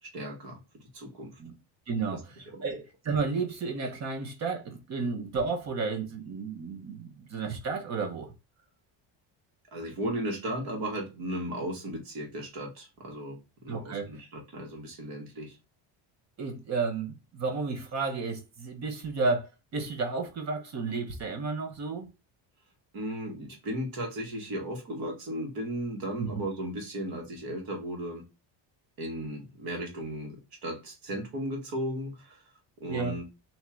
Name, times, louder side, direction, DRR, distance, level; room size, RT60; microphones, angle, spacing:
voice 1, 0.0-1.4 2.1-2.2 2.5-2.6 9.7-13.4 13.6-15.6 22.9-28.2 29.0-32.4 32.8-33.2, right 1 dB, 50° right, 1.6 m, -36 dB
voice 2, 1.9-2.4 2.6-8.3 13.7-14.1 16.4-22.1 26.2-26.3 32.9-33.1, right 4 dB, 35° right, 0.9 m, -32 dB
3.6 x 2.9 x 4.3 m
cardioid pair, 175°, 45 cm